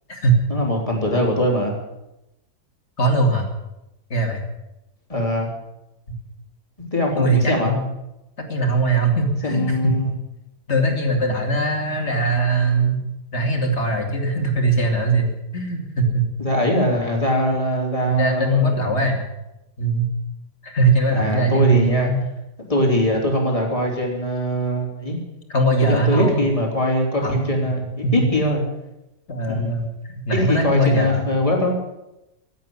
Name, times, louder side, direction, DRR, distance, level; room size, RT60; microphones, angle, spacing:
voice 1, 0.5-1.7 5.1-5.5 6.8-7.8 9.4-10.1 16.4-19.0 21.1-22.1 22.6-25.2 25.8-28.6 29.5-29.8 30.3-31.8, left 1 dB, 20° left, 0 dB, 3.5 m, -22 dB
voice 2, 3.0-3.4 4.1-4.5 7.2-7.9 8.5-9.9 10.7-13.0 13.3-15.3 15.5-16.2 18.0-19.2 19.8-20.1 20.6-22.2 25.5-26.5 27.2-27.5 27.8-28.3 29.3-31.3, right 2 dB, 45° left, 3 dB, 2.8 m, -21 dB
15.5 x 8.4 x 9.6 m, 0.92 s
omnidirectional pair, 1.7 m